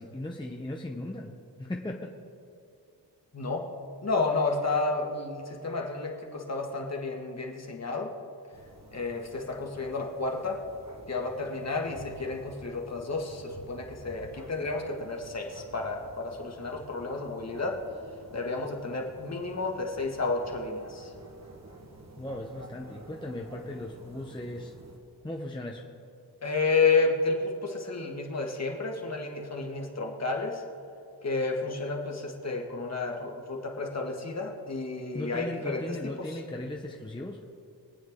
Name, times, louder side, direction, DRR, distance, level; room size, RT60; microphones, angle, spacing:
voice 1, 0.0-1.3 1.6-2.1 22.2-24.7 25.2-25.8 35.1-37.4, left 1 dB, 10° left, 0 dB, 0.8 m, -37 dB
voice 2, 3.3-3.7 4.0-8.1 8.9-10.6 11.1-17.8 18.3-21.1 26.4-30.6 31.2-36.4, left 3 dB, 40° left, 1 dB, 1.7 m, -31 dB
sound 1, 8.5-25.0, right 1 dB, 40° right, 1.5 m, -50 dB
23.5 x 8.7 x 3.7 m, 2.4 s
wide cardioid pair, 135°, 40 cm